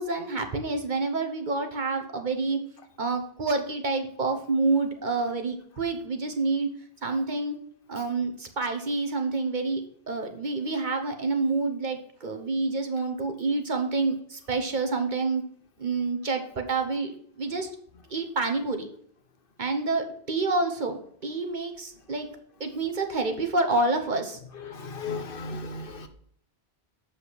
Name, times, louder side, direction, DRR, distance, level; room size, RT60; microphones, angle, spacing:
voice 1, 0.0-2.6 3.0-6.7 7.0-7.6 7.9-9.8 10.1-15.4 15.8-17.7 18.1-18.9 19.6-21.0 21.2-22.3 22.6-24.4, right 3 dB, 50° right, 1.2 m, -28 dB
voice 2, 24.5-26.1, left 3 dB, 60° left, 1.1 m, -35 dB
7.5 x 5.6 x 6.1 m
omnidirectional pair, 1.1 m